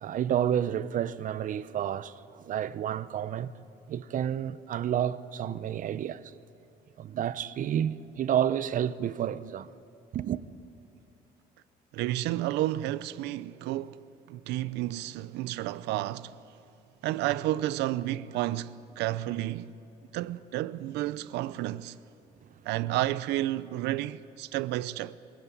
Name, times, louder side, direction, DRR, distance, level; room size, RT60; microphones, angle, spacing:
voice 1, 0.0-3.5 3.9-6.2 7.0-9.7 10.1-10.4, right 10 dB, 50° right, 0.8 m, -30 dB
voice 2, 11.9-14.0 14.3-16.3 17.0-19.7 20.1-21.9 22.6-25.2, right 15 dB, 85° right, 0.6 m, -31 dB
23.5 x 16.5 x 9.2 m
cardioid pair, 110°, 17 cm